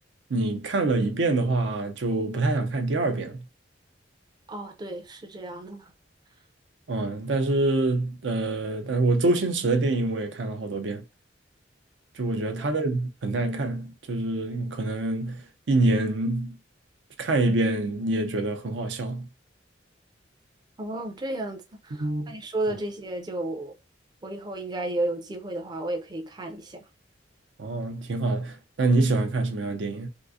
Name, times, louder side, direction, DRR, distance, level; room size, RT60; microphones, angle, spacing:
voice 1, 0.3-3.4 6.9-11.0 12.2-16.5 17.2-19.3 21.9-22.3 27.6-30.1, right 2 dB, 80° right, 0.6 m, -26 dB
voice 2, 4.5-5.9 20.8-23.8 24.2-26.8, right 2 dB, 25° right, 0.4 m, -33 dB
3.7 x 2.4 x 2.5 m
head